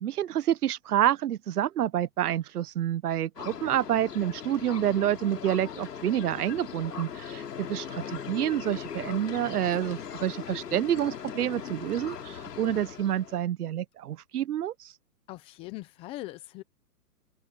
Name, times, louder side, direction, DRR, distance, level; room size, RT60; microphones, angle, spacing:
voice 1, 0.0-7.4 7.7-14.9, right 11 dB, 70° right, 1.1 m, -28 dB
sound 1, 3.4-13.4, left 8 dB, 80° left, 3.2 m, -39 dB
voice 2, 15.3-16.6, left 18 dB, 10° left, 0.6 m, -41 dB
hypercardioid pair, 140°, 47 cm